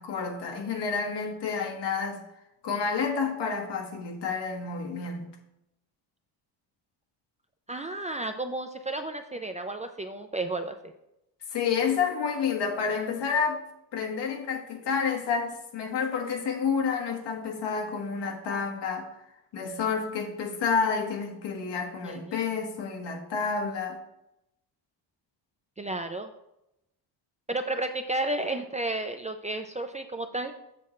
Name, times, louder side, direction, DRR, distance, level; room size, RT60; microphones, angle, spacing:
voice 1, 0.0-2.2 2.6-5.4 11.5-13.6 13.9-19.1 19.5-24.0, left 5 dB, 75° left, 2 dB, 1.6 m, -29 dB
voice 2, 7.7-10.8 22.0-22.2 25.8-26.3 27.5-30.5, right 2 dB, 20° right, 6 dB, 0.3 m, -32 dB
7.6 x 7.0 x 3.1 m, 0.85 s
cardioid pair, 125°, 43 cm